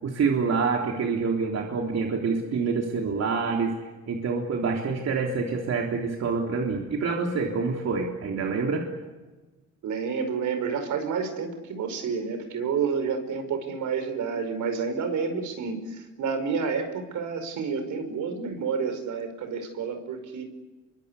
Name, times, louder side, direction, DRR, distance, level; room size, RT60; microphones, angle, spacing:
voice 1, 0.0-3.7 4.1-8.9, right 5 dB, 60° right, 0 dB, 3.5 m, -26 dB
voice 2, 9.8-20.4, right 5 dB, 75° right, 7 dB, 5.2 m, -29 dB
27.0 x 23.5 x 8.4 m, 1.2 s
cardioid pair, 90°, 30 cm